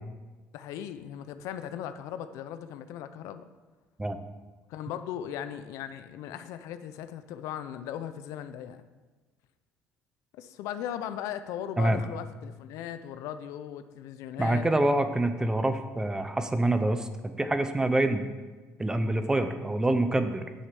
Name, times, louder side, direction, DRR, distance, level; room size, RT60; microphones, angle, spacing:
voice 1, 0.5-3.4 4.7-8.8 10.3-14.9, left 10 dB, 80° left, 11 dB, 0.6 m, -38 dB
voice 2, 14.4-18.2 18.8-20.5, right 1 dB, 10° right, 9 dB, 0.7 m, -26 dB
9.5 x 6.3 x 5.9 m, 1.3 s
cardioid pair, 115°, 5 cm